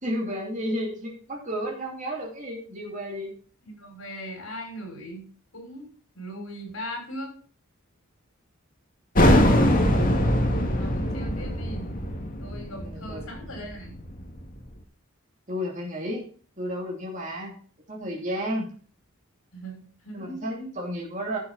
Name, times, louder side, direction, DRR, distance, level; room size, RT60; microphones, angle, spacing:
voice 1, 0.0-3.3 12.8-13.3 15.5-16.3 16.6-17.5 17.9-18.7 20.1-21.4, equal, 35° right, -2 dB, 2.9 m, -32 dB
voice 2, 3.6-7.3 10.1-10.2 10.7-11.9 12.4-14.0 19.5-20.7, equal, 75° left, 2 dB, 5.9 m, -39 dB
sound 1, 9.1-14.5, left 1 dB, 40° left, 2.1 m, -22 dB
11.5 x 7.6 x 4.2 m, 0.43 s
head